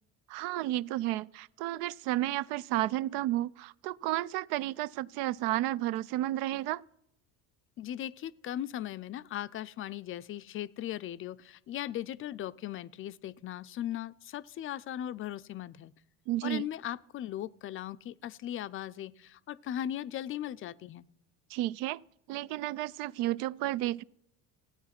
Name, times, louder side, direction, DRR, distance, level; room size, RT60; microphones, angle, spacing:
voice 1, 0.3-6.8 16.3-16.7 21.5-22.0 22.3-24.0, right 15 dB, 80° right, 0.5 m, -32 dB
voice 2, 7.8-15.9 16.4-21.1, left 11 dB, 40° left, 0.4 m, -38 dB
15.0 x 9.4 x 5.8 m
cardioid pair, 115°, 35 cm